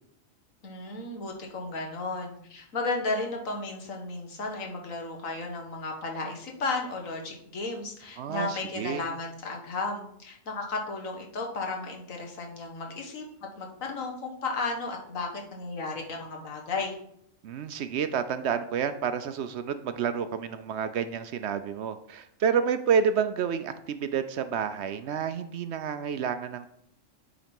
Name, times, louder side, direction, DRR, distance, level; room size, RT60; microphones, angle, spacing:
voice 1, 0.6-13.2 13.6-17.0, left 3 dB, 85° left, 1 dB, 1.7 m, -34 dB
voice 2, 8.2-9.1 17.4-26.7, right 7 dB, 65° right, 11 dB, 0.7 m, -29 dB
8.9 x 3.9 x 5.2 m, 0.70 s
omnidirectional pair, 1.4 m